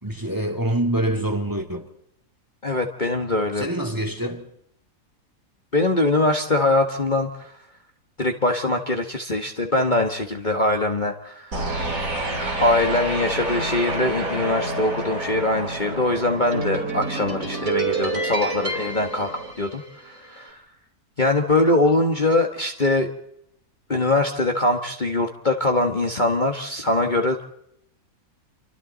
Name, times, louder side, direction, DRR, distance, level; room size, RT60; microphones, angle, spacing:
voice 1, 0.0-1.9 3.6-4.4, right 1 dB, 10° right, 2.4 m, -25 dB
voice 2, 2.6-3.7 5.7-7.6 8.2-11.6 12.6-19.3 19.6-20.6 21.2-23.1 23.9-27.4, left 2 dB, 30° left, 1.7 m, -22 dB
sound 1, 11.5-20.1, right 2 dB, 55° right, 3.9 m, -28 dB
29.0 x 24.0 x 4.1 m
omnidirectional pair, 1.7 m